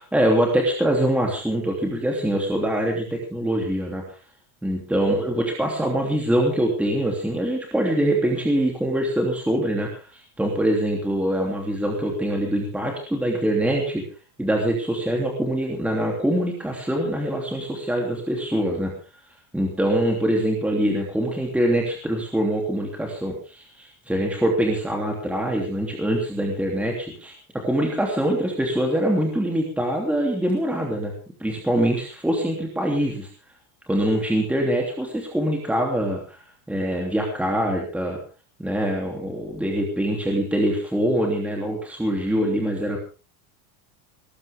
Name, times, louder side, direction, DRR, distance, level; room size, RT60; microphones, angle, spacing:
voice 1, 0.0-4.2 4.6-14.0 14.4-18.9 19.5-31.1 31.4-33.3 33.9-36.4 36.7-38.2 38.6-43.0, right 1 dB, 5° right, 0 dB, 3.1 m, -24 dB
19.0 x 16.5 x 3.6 m, 0.35 s
cardioid pair, 165°, 43 cm